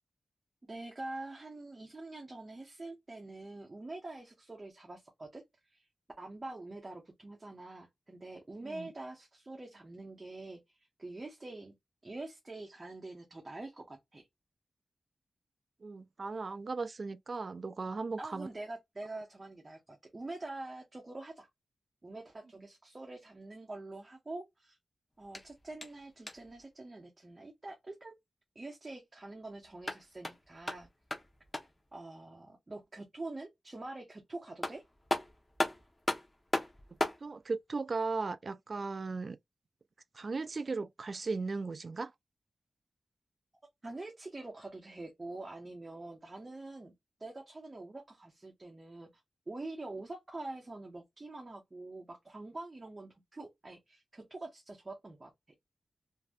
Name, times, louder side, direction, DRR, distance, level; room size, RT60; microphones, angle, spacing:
voice 1, 0.7-5.4 5.7-5.9 6.2-11.7 12.0-14.3 18.2-21.5 22.0-24.8 25.2-28.2 28.5-30.9 31.9-34.8 43.8-46.9 47.2-49.1 49.5-55.3, right 2 dB, 30° right, 0.9 m, -45 dB
voice 2, 15.8-18.5 37.2-39.4 40.1-42.1, right 4 dB, 50° right, 0.3 m, -37 dB
sound 1, 25.2-26.6 29.6-31.9 34.2-34.3 34.6-37.3, left 1 dB, 20° left, 0.8 m, -37 dB
3.1 x 2.7 x 2.3 m
cardioid pair, 75°, 0 cm